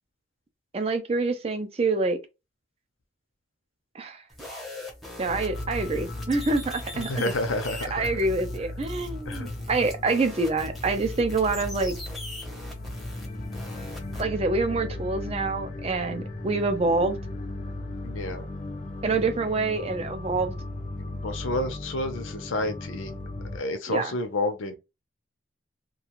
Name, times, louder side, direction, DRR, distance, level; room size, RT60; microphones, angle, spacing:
voice 1, 0.7-2.2 3.9-4.2 5.2-7.1 7.9-11.9 14.2-17.2 19.0-20.5 23.9-24.1, right 3 dB, 30° right, 0.4 m, -26 dB
sound 1, 4.3-14.2, left 1 dB, ahead, 0.7 m, -40 dB
sound 2, 5.3-23.6, left 2 dB, 40° left, 0.5 m, -37 dB
voice 2, 6.9-8.1 9.2-9.6 18.0-18.5 21.0-23.2 23.5-24.8, left 2 dB, 85° left, 0.6 m, -30 dB
2.4 x 2.3 x 2.9 m
head